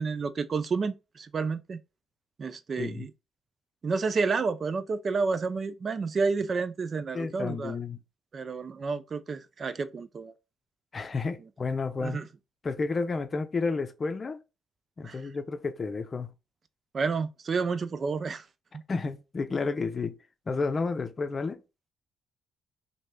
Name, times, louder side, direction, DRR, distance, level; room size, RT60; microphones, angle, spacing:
voice 1, 0.0-1.8 2.4-3.1 3.8-7.7 8.3-10.3 12.0-12.2 15.0-15.2 16.9-18.4, right 4 dB, 45° right, 0.4 m, -30 dB
voice 2, 7.1-8.0 10.9-12.2 12.6-14.4 15.0-16.3 18.9-20.2 20.5-21.6, left 4 dB, 35° left, 0.6 m, -31 dB
3.1 x 2.8 x 4.5 m
cardioid pair, 90°, 0 cm